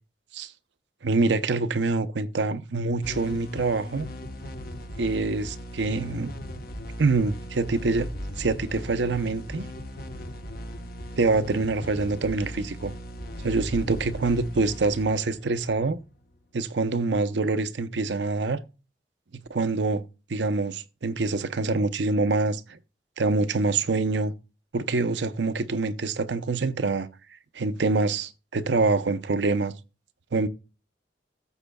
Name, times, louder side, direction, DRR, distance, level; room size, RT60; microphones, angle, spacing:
voice 1, 1.0-4.1 5.0-6.3 7.0-8.1 8.4-9.6 11.2-12.9 13.4-16.0 16.5-18.6 19.5-20.0 20.3-22.8 23.2-24.3 24.7-27.1 27.5-29.7 30.3-30.5, right 3 dB, 80° right, 0.7 m, -25 dB
sound 1, 3.0-16.3, equal, 60° left, 1.1 m, -38 dB
15.5 x 7.1 x 2.3 m
head